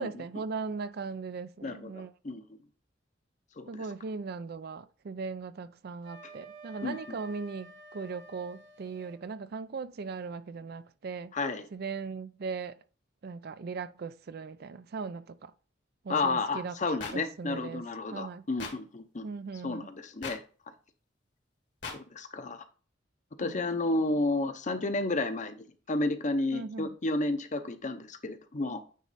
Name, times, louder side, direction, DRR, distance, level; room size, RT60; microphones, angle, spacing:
voice 1, 0.0-2.1 3.7-11.3 11.7-12.8 13.2-15.5 16.0-16.8 17.1-17.8 18.1-18.5 19.2-19.9 23.4-23.6 26.5-27.0, right 4 dB, 55° right, 0.4 m, -38 dB
voice 2, 1.6-2.4 3.6-3.7 6.8-7.0 11.3-11.7 16.1-19.3 19.6-20.4 21.9-22.6 23.4-28.8, left 2 dB, 40° left, 0.7 m, -31 dB
Wind instrument woodwind instrument, 6.0-9.2, right 1 dB, 85° right, 1.3 m, -50 dB
sound 1, 17.0-17.1 18.6-18.7 20.2-20.4 21.8-22.0, left 4 dB, 70° left, 1.7 m, -38 dB
9.2 x 3.1 x 4.1 m
head